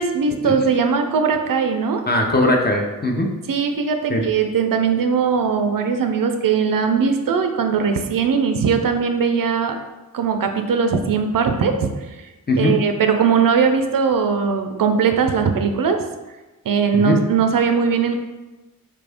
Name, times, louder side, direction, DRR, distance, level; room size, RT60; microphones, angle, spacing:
voice 1, 0.0-2.0 3.5-9.8 10.1-11.9 12.6-16.0 16.7-18.2, right 6 dB, 70° right, 6 dB, 0.5 m, -19 dB
voice 2, 2.1-3.3 4.1-4.2 12.5-12.7 16.9-17.2, left 1 dB, 25° left, 1 dB, 0.7 m, -19 dB
4.4 x 2.5 x 3.4 m, 1.1 s
cardioid pair, 60°, 35 cm